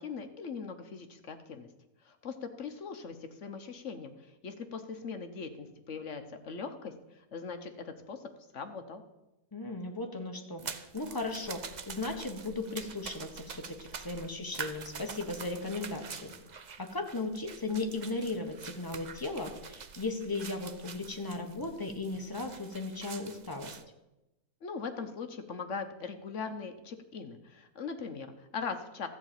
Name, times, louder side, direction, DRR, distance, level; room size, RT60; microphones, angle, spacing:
voice 1, 0.0-1.7 2.0-4.1 4.4-8.2 8.5-9.0 24.6-29.1, left 5 dB, 55° left, 7 dB, 1.2 m, -40 dB
voice 2, 9.5-16.3 16.8-23.8, left 3 dB, 15° left, 3 dB, 1.1 m, -36 dB
sound 1, 10.6-23.8, right 6 dB, 60° right, 0.4 m, -46 dB
13.5 x 4.9 x 8.9 m, 0.97 s
omnidirectional pair, 1.6 m